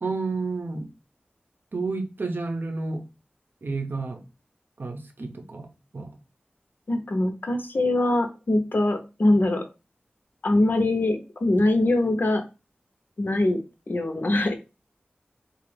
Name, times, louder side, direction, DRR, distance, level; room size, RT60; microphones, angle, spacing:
voice 1, 0.0-0.9 1.7-3.0 3.6-4.2 4.8-5.7 5.9-6.1, right 3 dB, 70° right, 5 dB, 0.7 m, -30 dB
voice 2, 6.9-9.6 10.4-12.4 13.2-13.6 13.9-14.5, left 1 dB, 65° left, 5 dB, 0.7 m, -23 dB
3.7 x 2.4 x 3.3 m, 0.29 s
wide cardioid pair, 70°, 4 cm